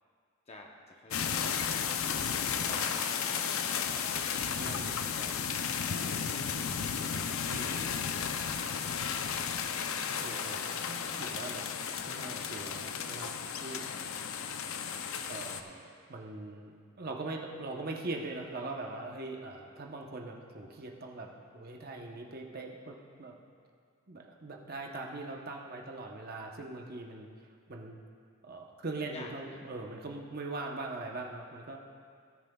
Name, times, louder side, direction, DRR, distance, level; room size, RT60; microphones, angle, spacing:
voice 1, 0.5-2.3 2.7-5.4 5.9-8.0 8.8-9.1 13.8-14.2 29.0-29.6, left 2 dB, 30° left, 1 dB, 0.8 m, -51 dB
sound 1, 1.1-15.6, left 7 dB, 65° left, 0.5 m, -34 dB
voice 2, 4.6-5.0 7.5-8.1 10.2-11.7 12.1-13.3 13.6-13.8 15.3-23.3 24.1-27.3 27.7-28.0 28.4-31.8, right 2 dB, 45° right, 1 dB, 0.9 m, -41 dB
17.0 x 10.0 x 2.3 m, 2.1 s
head